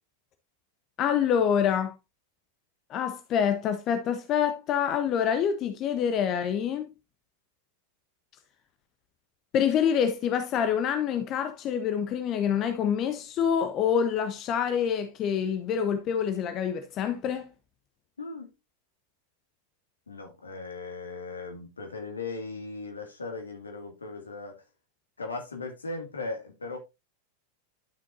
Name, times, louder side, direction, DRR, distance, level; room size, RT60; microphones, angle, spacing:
voice 1, 1.0-1.9 2.9-6.9 9.5-17.5, left 8 dB, 35° left, 0.9 m, -26 dB
voice 2, 18.2-18.5 20.1-24.6 25.2-26.8, left 3 dB, 75° left, 2.1 m, -38 dB
11.0 x 6.2 x 2.6 m
figure-of-eight pair, 90°, 0 cm